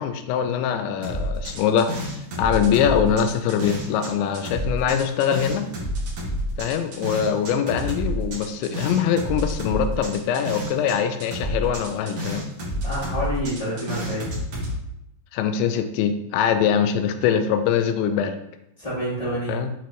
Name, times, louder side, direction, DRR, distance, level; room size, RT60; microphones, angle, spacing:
voice 1, 0.0-5.7 6.6-12.5 15.3-18.4 19.5-19.7, left 8 dB, 85° left, 8 dB, 2.9 m, -23 dB
sound 1, 1.0-4.1 4.3-10.9 11.2-14.7, equal, 50° right, 1.7 m, -29 dB
voice 2, 12.8-14.3 18.8-19.6, equal, 15° left, -10 dB, 1.1 m, -28 dB
7.9 x 4.3 x 3.1 m, 0.81 s
omnidirectional pair, 5.2 m